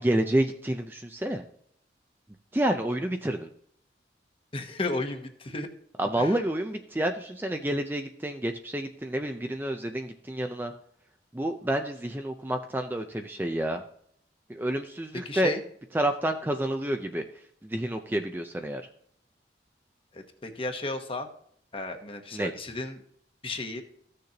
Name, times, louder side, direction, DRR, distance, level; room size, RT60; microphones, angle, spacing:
voice 1, 0.0-1.4 2.5-3.5 6.0-10.7 11.3-13.8 14.5-15.5 15.9-17.2 17.6-18.8 22.3-22.5, right 1 dB, 10° right, 5 dB, 0.5 m, -29 dB
voice 2, 4.5-5.7 6.2-6.4 15.2-15.6 20.1-21.3 21.7-23.0 23.4-23.8, left 2 dB, 30° left, 5 dB, 1.0 m, -33 dB
15.0 x 6.5 x 2.9 m, 0.66 s
head